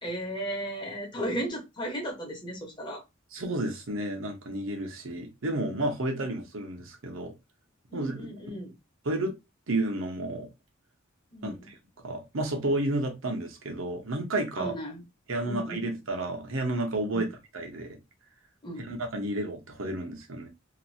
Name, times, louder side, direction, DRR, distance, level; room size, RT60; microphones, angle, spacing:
voice 1, 0.0-3.0 7.9-8.7 11.3-11.7 14.6-15.0 15.4-15.9 17.1-17.3 18.6-18.9, right 1 dB, 25° left, 1.0 m, -35 dB
voice 2, 3.3-7.3 7.9-8.2 9.0-9.3 9.7-10.5 11.4-11.8 12.0-14.7 15.3-18.0 18.8-20.5, right 2 dB, 75° right, 0.9 m, -31 dB
2.9 x 2.5 x 2.6 m
head